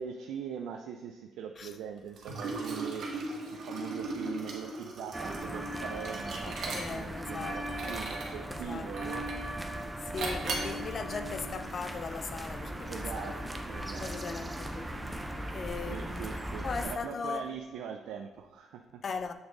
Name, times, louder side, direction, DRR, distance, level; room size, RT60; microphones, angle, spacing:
voice 1, 0.0-9.3 12.9-14.1 15.9-19.0, right 7 dB, 85° right, 0.3 m, -42 dB
Liquid, 2.2-7.2 7.6-8.4 9.0-9.5 10.2-10.8, right 3 dB, 65° right, 1.1 m, -37 dB
sound 1, 5.1-17.0, right 1 dB, 10° right, 0.6 m, -38 dB
voice 2, 6.4-7.6 7.8-8.0 8.5-8.9 10.0-13.4 13.8-15.2 15.5-16.3 16.6-17.5 19.0-19.3, left 5 dB, 45° left, 0.4 m, -39 dB
7.0 x 3.5 x 3.8 m
cardioid pair, 90°, 0 cm